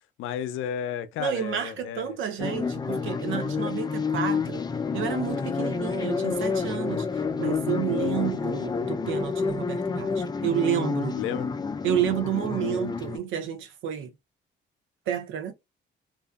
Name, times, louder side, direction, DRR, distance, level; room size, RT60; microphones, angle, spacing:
voice 1, 0.2-2.2 8.0-8.3 11.1-11.5, left 9 dB, 90° left, 0.4 m, -33 dB
voice 2, 1.2-4.6 4.9-7.1 7.4-11.2 11.8-14.1 15.1-15.5, right 9 dB, 85° right, 0.6 m, -30 dB
sound 1, 2.4-13.2, left 5 dB, 20° left, 0.3 m, -29 dB
2.6 x 2.2 x 2.3 m
cardioid pair, 90°, 20 cm